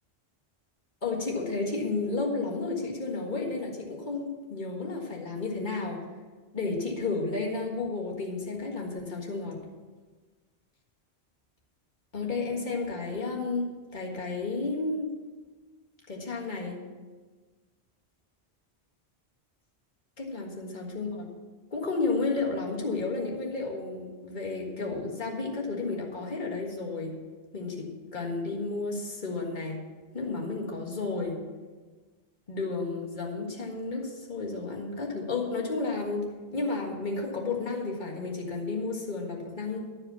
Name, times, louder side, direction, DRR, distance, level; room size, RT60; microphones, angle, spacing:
voice 1, 1.0-6.0 6.5-9.6 12.1-15.1 16.1-16.8 20.2-21.3 21.7-27.2 27.5-29.8 30.1-31.4 32.5-36.3 36.5-39.8, left 3 dB, 45° left, -2 dB, 1.8 m, -32 dB
12.0 x 5.1 x 6.9 m, 1.4 s
omnidirectional pair, 1.1 m